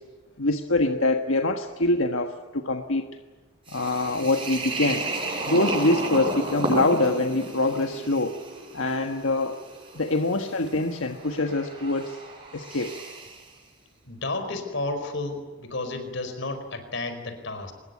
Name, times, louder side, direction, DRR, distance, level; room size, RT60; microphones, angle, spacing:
voice 1, 0.4-3.1 3.7-5.1 5.5-8.4 8.7-9.6 9.9-12.2 12.5-12.9, left 2 dB, 80° left, 5 dB, 1.5 m, -24 dB
sound 1, 3.7-13.5, right 2 dB, 25° right, 7.6 m, -33 dB
voice 2, 14.1-17.7, left 2 dB, 60° left, 8 dB, 4.8 m, -32 dB
24.5 x 21.5 x 9.6 m, 1.3 s
head